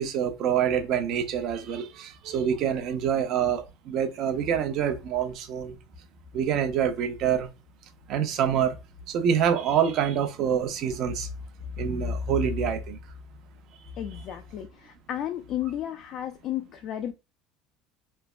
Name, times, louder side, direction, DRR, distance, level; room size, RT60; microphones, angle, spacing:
voice 1, 0.0-5.8 6.3-7.5 8.1-8.8 9.1-11.3 11.8-13.0, right 8 dB, 60° right, 0.7 m, -26 dB
voice 2, 14.0-17.1, left 11 dB, 55° left, 0.4 m, -33 dB
3.2 x 2.1 x 2.4 m
supercardioid pair, 100°, 0 cm